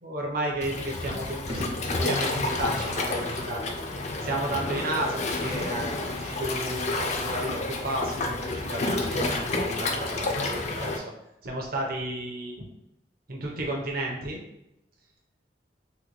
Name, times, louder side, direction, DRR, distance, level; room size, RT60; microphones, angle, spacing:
voice 1, 0.0-3.7 4.2-11.0 11.4-12.6 13.3-14.4, right 1 dB, 55° right, 0 dB, 0.8 m, -33 dB
Waves surf, 0.6-11.0, left 2 dB, 40° left, 0.4 m, -30 dB
3.9 x 2.2 x 2.9 m, 0.84 s
head